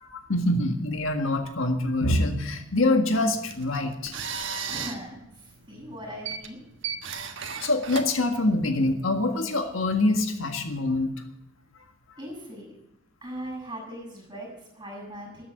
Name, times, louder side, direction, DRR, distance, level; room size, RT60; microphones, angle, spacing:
voice 1, 0.1-4.1 7.6-11.1, left 2 dB, 85° left, 5 dB, 1.7 m, -25 dB
sound 1, 3.3-8.9, right 6 dB, 65° right, 1.4 m, -36 dB
voice 2, 4.7-6.6 12.2-12.7 13.2-15.4, equal, 20° right, 0 dB, 6.5 m, -39 dB
13.5 x 8.7 x 7.9 m, 0.82 s
head